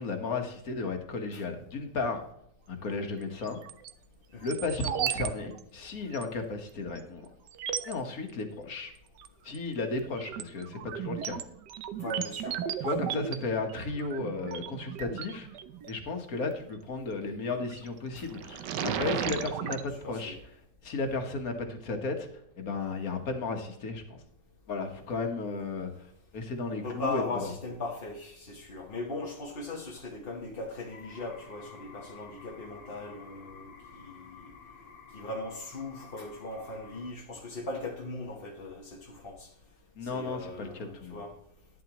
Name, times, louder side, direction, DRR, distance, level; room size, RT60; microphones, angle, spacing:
voice 1, 0.0-2.2 2.7-3.6 4.4-7.3 7.9-8.9 9.4-11.4 12.8-15.5 15.9-20.4 20.8-22.3 22.6-24.2 24.7-27.5 40.0-41.2, left 3 dB, 55° left, 5 dB, 1.8 m, -34 dB
sound 1, 3.4-3.9 4.5-5.3 5.6-5.7 6.1-6.2 7.0-7.1 7.5-8.0 9.2-9.6 10.0-15.9 17.5-17.9 18.3-19.8, right 9 dB, 75° right, 1.3 m, -35 dB
voice 2, 12.0-12.6 18.2-18.3 20.0-20.4 26.7-34.5 35.1-39.5 40.0-41.3, left 2 dB, 35° left, 0 dB, 1.1 m, -39 dB
sound 2, 30.9-37.1, left 5 dB, 85° left, 2.2 m, -51 dB
11.5 x 10.5 x 3.0 m, 0.74 s
omnidirectional pair, 1.9 m